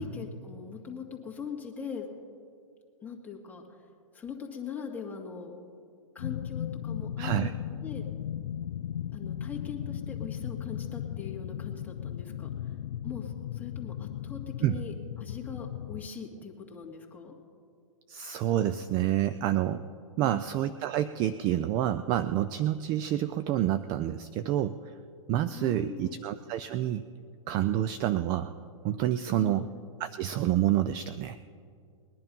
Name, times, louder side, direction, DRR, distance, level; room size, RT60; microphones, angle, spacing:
voice 1, 0.0-2.1 3.0-3.9 4.1-5.5 6.1-7.5 7.8-8.1 9.1-12.8 13.0-17.4 20.2-20.5 25.5-26.2 29.3-29.7, left 6 dB, 10° left, -1 dB, 2.0 m, -41 dB
sound 1, 6.2-16.1, left 10 dB, 75° left, 0.5 m, -36 dB
voice 2, 7.2-7.5 14.6-14.8 18.1-19.8 20.2-24.9 25.3-27.0 27.5-28.5 28.8-29.7 30.0-31.4, right 12 dB, 25° right, 13 dB, 0.3 m, -28 dB
20.5 x 10.5 x 5.4 m, 2.2 s
hypercardioid pair, 140°, 18 cm